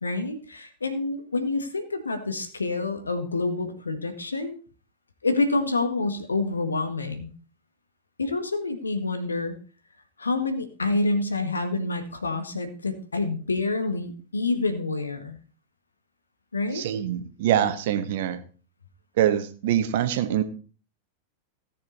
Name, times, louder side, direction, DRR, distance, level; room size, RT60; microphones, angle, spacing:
voice 1, 0.0-4.5 5.2-7.3 8.2-9.6 10.2-15.4 16.5-16.9, left 3 dB, 75° left, 8 dB, 1.8 m, -27 dB
voice 2, 16.7-18.4 19.2-20.4, right 10 dB, 55° right, 8 dB, 1.5 m, -24 dB
16.5 x 6.8 x 4.1 m, 0.37 s
figure-of-eight pair, 90°, 0 cm